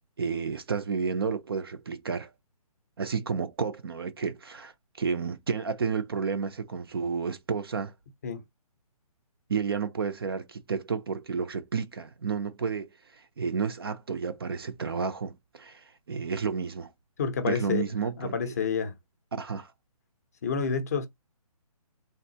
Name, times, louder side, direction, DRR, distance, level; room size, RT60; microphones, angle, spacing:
voice 1, 0.2-2.3 3.0-4.7 5.0-7.9 9.5-16.9 17.4-18.3 19.4-19.7, right 5 dB, 40° right, 0.4 m, -31 dB
voice 2, 17.2-17.8 18.2-18.9 20.4-21.1, left 6 dB, 25° left, 0.5 m, -29 dB
3.4 x 2.4 x 2.6 m
hypercardioid pair, 165°, 19 cm